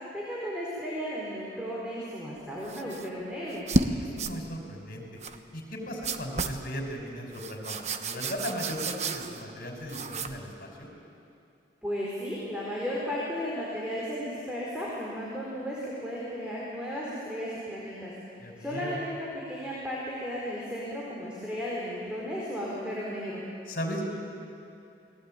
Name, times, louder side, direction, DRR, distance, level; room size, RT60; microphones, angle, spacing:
voice 1, 0.1-3.6 11.8-18.1 18.6-23.4, equal, 5° right, -6 dB, 4.4 m, -34 dB
sound 1, 2.6-3.1 3.5-3.9 4.2-4.4 5.2-5.4 6.0-6.6 7.3-9.5 9.9-10.4, right 3 dB, 40° right, 1.1 m, -31 dB
voice 2, 3.9-5.0 5.5-10.9 18.4-19.0 23.7-24.0, equal, 55° left, 1 dB, 5.6 m, -37 dB
29.0 x 20.5 x 9.1 m, 2.7 s
head